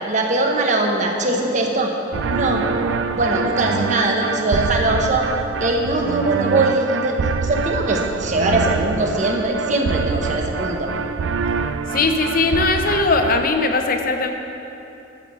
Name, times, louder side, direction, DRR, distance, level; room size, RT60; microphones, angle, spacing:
voice 1, 0.1-1.9 2.3-2.7 3.1-5.3 5.6-10.9, right 2 dB, 40° right, 1 dB, 1.1 m, -21 dB
sound 1, 2.1-13.5, right 5 dB, 80° right, 0.4 m, -25 dB
voice 2, 11.9-14.3, left 3 dB, 50° left, 5 dB, 0.8 m, -19 dB
12.5 x 5.1 x 6.9 m, 2.9 s
head